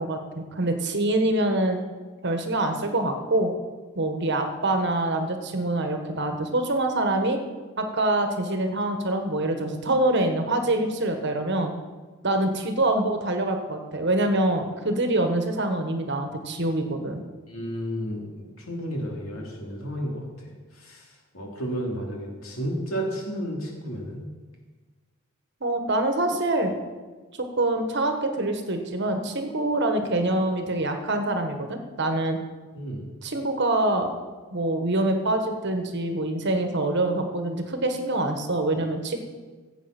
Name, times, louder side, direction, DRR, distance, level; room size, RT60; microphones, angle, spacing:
voice 1, 0.0-1.8 2.2-3.5 3.9-7.4 7.8-11.7 12.2-17.2 25.6-26.8 27.4-32.4 33.2-34.1 34.5-39.2, right 2 dB, 55° right, 6 dB, 1.4 m, -25 dB
voice 2, 17.5-21.1 21.3-24.2 32.7-33.0, equal, 75° left, -1 dB, 3.0 m, -32 dB
15.5 x 8.2 x 6.0 m, 1.4 s
head